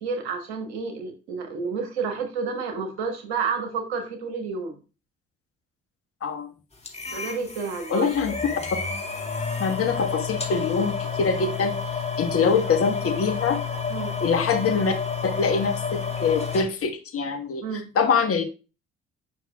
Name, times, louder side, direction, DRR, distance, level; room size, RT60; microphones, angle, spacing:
voice 1, 0.0-4.7 7.1-8.1 13.9-14.2 17.6-17.9, right 5 dB, 80° right, 5 dB, 1.3 m, -30 dB
sound 1, 6.8-16.6, left 5 dB, 20° left, 2.1 m, -30 dB
voice 2, 7.9-8.3 9.6-11.7 12.2-13.6 14.2-14.9 15.2-17.6 17.9-18.4, left 5 dB, 45° left, 6 dB, 1.2 m, -24 dB
7.7 x 5.4 x 2.4 m, 0.32 s
hypercardioid pair, 50°, 32 cm